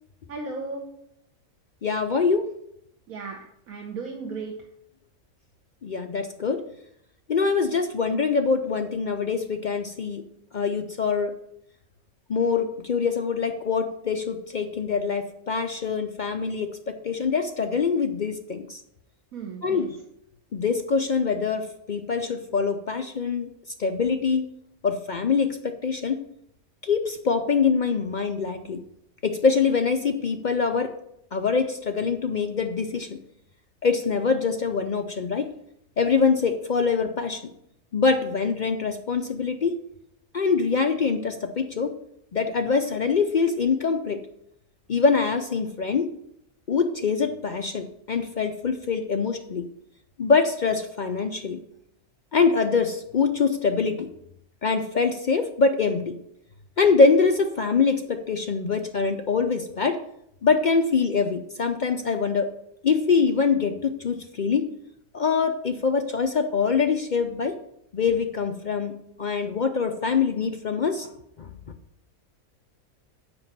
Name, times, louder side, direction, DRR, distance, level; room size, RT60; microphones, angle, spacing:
voice 1, 0.3-0.8 3.1-3.4 3.7-4.5 19.3-19.9, right 4 dB, 75° right, 1 dB, 1.5 m, -35 dB
voice 2, 1.8-2.5 5.8-6.6 7.3-10.2 10.5-11.3 12.3-18.8 19.6-20.0 20.5-23.5 23.8-24.5 24.8-26.2 26.8-28.8 29.2-30.9 31.3-33.2 33.8-35.5 36.0-37.4 37.9-39.8 40.3-41.9 42.3-44.2 44.9-46.1 46.7-49.7 50.2-51.6 52.3-54.1 54.6-56.2 56.8-60.0 60.4-62.5 62.8-64.7 65.1-67.6 67.9-68.9 69.2-71.1 71.4-71.5, left 5 dB, 60° left, 6 dB, 0.5 m, -24 dB
7.8 x 5.2 x 7.3 m, 0.76 s
omnidirectional pair, 1.5 m